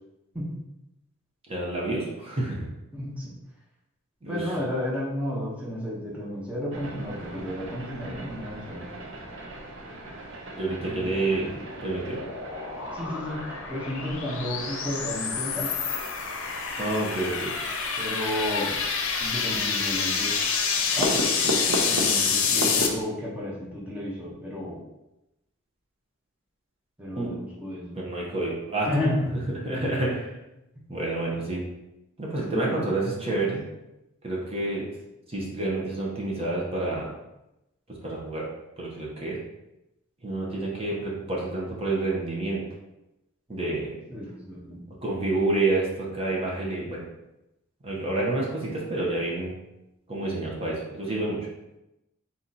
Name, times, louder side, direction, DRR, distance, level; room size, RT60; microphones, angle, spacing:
voice 1, 1.5-2.7 4.2-4.6 10.6-12.2 16.8-17.5 27.2-27.3 28.0-28.9 29.6-30.3 30.9-31.6 32.2-33.6 34.2-34.9 35.3-37.1 37.9-38.5 38.8-39.4 40.2-42.6 43.5-43.9 45.0-47.0 47.8-49.5 50.1-51.4, right 2 dB, 30° right, -4 dB, 0.9 m, -28 dB
voice 2, 2.9-3.3 4.3-8.8 10.8-11.5 12.9-13.4 13.7-15.7 18.0-18.8 19.2-21.1 21.9-24.8 27.0-28.0 28.9-29.4 31.2-31.4 32.5-33.4 44.1-44.8, left 1 dB, 5° right, -6 dB, 0.9 m, -32 dB
sound 1, 6.7-23.0, equal, 65° right, 0.7 m, -37 dB
sound 2, 11.5-22.9, left 5 dB, 65° left, 0.6 m, -28 dB
4.2 x 2.9 x 3.9 m, 0.92 s
head